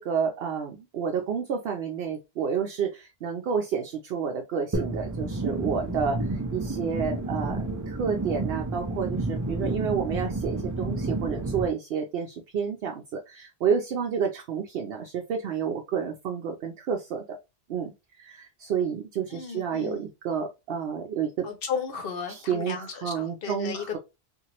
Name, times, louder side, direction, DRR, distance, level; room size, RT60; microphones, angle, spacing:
voice 1, 0.0-6.2 6.5-17.4 17.7-17.9 18.2-21.5 22.3-24.0, right 7 dB, 75° right, 0.8 m, -30 dB
sound 1, 4.7-11.7, right 2 dB, 30° right, 0.4 m, -30 dB
voice 2, 19.3-20.1 21.4-24.0, left 6 dB, 70° left, 0.9 m, -34 dB
2.9 x 2.5 x 2.8 m
omnidirectional pair, 1.0 m